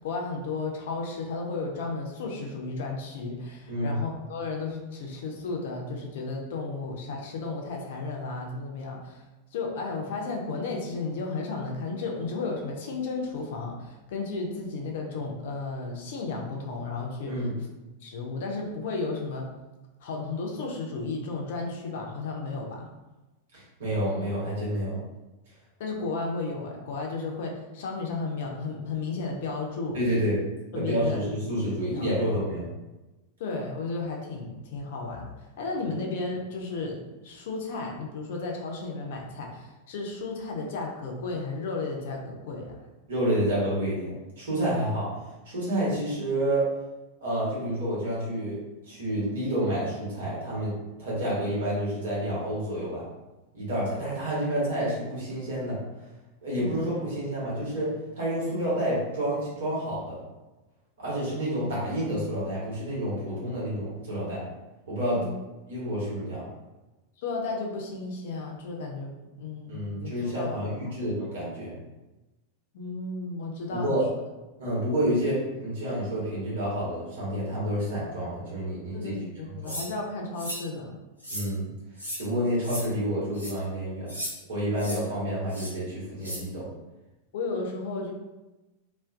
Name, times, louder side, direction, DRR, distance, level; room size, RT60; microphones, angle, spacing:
voice 1, 0.0-9.2 9.5-17.3 18.0-19.5 20.0-22.9 25.8-30.0 30.7-32.5 33.4-42.8 56.6-56.8 65.1-65.4 67.2-69.1 69.4-70.6 72.7-74.0 78.9-80.9 87.3-88.1, left 3 dB, 55° left, 0 dB, 0.4 m, -34 dB
voice 2, 3.7-4.0 17.3-17.5 23.5-25.0 29.9-30.3 30.7-32.7 43.1-45.1 45.4-46.7 47.2-48.6 48.9-50.7 51.0-53.0 53.5-55.8 56.4-57.9 58.2-60.2 61.0-64.4 64.9-65.2 65.7-66.4 69.7-71.7 73.7-74.0 74.6-79.1 79.5-79.7 81.3-81.7 82.2-84.1 84.5-86.7, equal, 60° right, -7 dB, 1.0 m, -29 dB
sound 1, 79.7-79.9 80.4-80.6 81.2-81.5 82.0-82.2 82.6-82.8 83.3-83.5 84.1-84.3 84.8-85.0 85.5-85.7 86.2-86.4, equal, 90° right, 0.6 m, -35 dB
2.3 x 2.1 x 2.4 m, 1.1 s
figure-of-eight pair, 90°, 0 cm